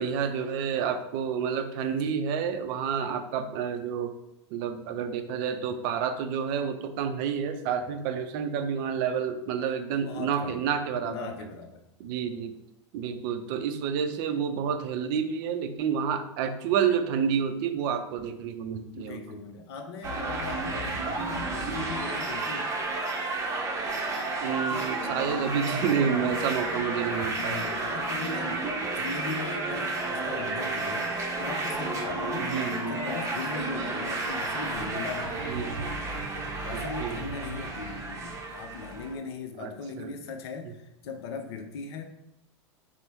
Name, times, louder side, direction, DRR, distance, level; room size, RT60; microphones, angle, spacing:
voice 1, 0.0-4.1 4.5-11.3 12.0-12.5 12.9-19.2 24.4-27.7 32.4-33.0 35.5-35.9 36.7-37.2 39.6-40.1, right 7 dB, 45° right, 7 dB, 0.4 m, -29 dB
voice 2, 10.0-10.6 11.0-11.9 18.9-22.7 27.3-28.7 28.9-32.6 32.8-35.5 36.6-42.0, left 5 dB, 55° left, 6 dB, 0.6 m, -39 dB
sound 1, 20.0-39.1, right 2 dB, 20° right, 0.7 m, -31 dB
5.2 x 2.0 x 3.0 m, 0.84 s
figure-of-eight pair, 90°, 16 cm